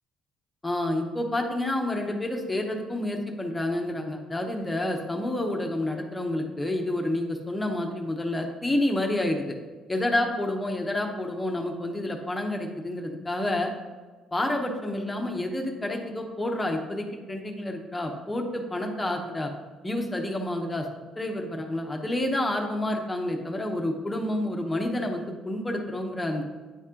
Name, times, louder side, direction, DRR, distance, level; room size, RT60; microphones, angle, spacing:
voice 1, 0.6-9.6 9.9-13.7 14.3-19.5 19.8-20.9 21.2-26.4, left 1 dB, 15° left, 2 dB, 0.9 m, -29 dB
10.0 x 4.2 x 3.7 m, 1.4 s
cardioid pair, 120°, 0 cm